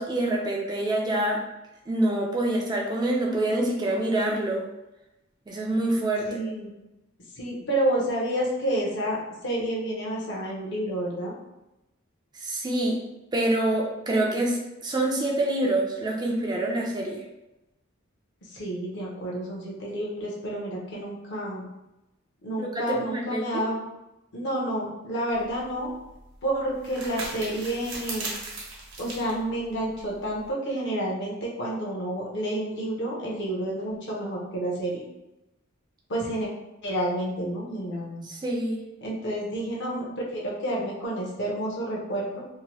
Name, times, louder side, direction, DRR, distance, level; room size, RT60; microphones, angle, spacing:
voice 1, 0.0-1.4 1.9-4.6 5.5-6.3 12.4-13.0 13.3-17.2 22.6-23.6 38.2-38.8, right 1 dB, 20° right, -1 dB, 0.3 m, -26 dB
voice 2, 6.3-6.7 7.4-9.2 9.4-11.3 18.5-21.6 22.4-23.8 24.3-25.9 26.4-28.3 29.0-35.0 36.1-36.5 36.8-38.2 39.0-42.4, right 1 dB, 55° left, -3 dB, 0.7 m, -29 dB
sound 1, 25.3-30.5, right 2 dB, 75° right, 0.9 m, -39 dB
2.8 x 2.1 x 2.9 m, 0.96 s
head